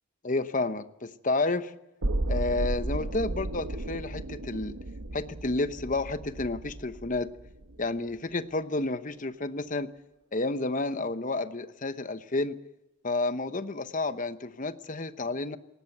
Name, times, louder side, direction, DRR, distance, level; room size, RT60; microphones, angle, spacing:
voice 1, 0.2-1.7 2.3-4.8 5.1-7.3 7.8-9.9 10.3-12.6 13.0-15.6, left 2 dB, 35° left, 12 dB, 0.9 m, -30 dB
sound 1, 2.0-8.0 8.3-8.4, right 1 dB, 80° right, 1.2 m, -34 dB
19.5 x 18.0 x 8.0 m, 0.94 s
head